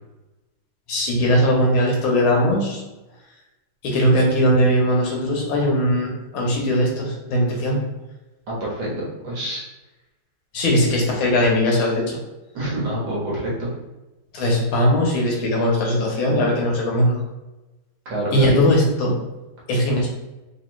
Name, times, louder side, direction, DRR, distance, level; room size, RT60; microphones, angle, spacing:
voice 1, 0.9-2.8 3.8-7.8 10.5-12.2 14.3-17.1 18.3-19.2 19.7-20.1, equal, 70° left, -1 dB, 1.6 m, -19 dB
voice 2, 8.5-9.6 10.7-10.9 12.5-13.7 18.1-18.5, right 1 dB, 60° right, -6 dB, 1.8 m, -27 dB
4.1 x 2.9 x 3.0 m, 1.0 s
omnidirectional pair, 2.4 m